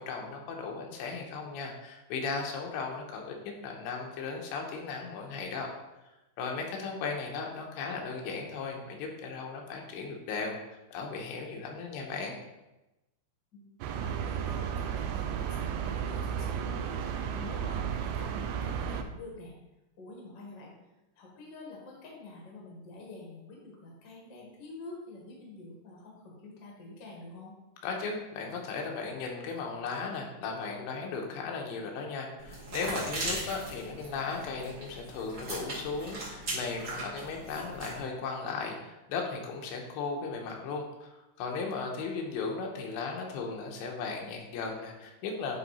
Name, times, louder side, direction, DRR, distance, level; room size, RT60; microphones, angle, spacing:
voice 1, 0.0-5.7 6.4-10.6 10.9-12.4 27.8-45.6, left 4 dB, 85° left, 1 dB, 3.2 m, -36 dB
sound 1, 13.8-19.0, right 8 dB, 85° right, 2.3 m, -33 dB
voice 2, 14.0-17.0 17.3-19.5 20.0-20.7 21.1-27.5, left 2 dB, 55° left, -3 dB, 1.1 m, -47 dB
sound 2, 32.4-38.0, right 1 dB, 45° right, 1.3 m, -39 dB
10.0 x 3.5 x 4.2 m, 1.0 s
omnidirectional pair, 5.1 m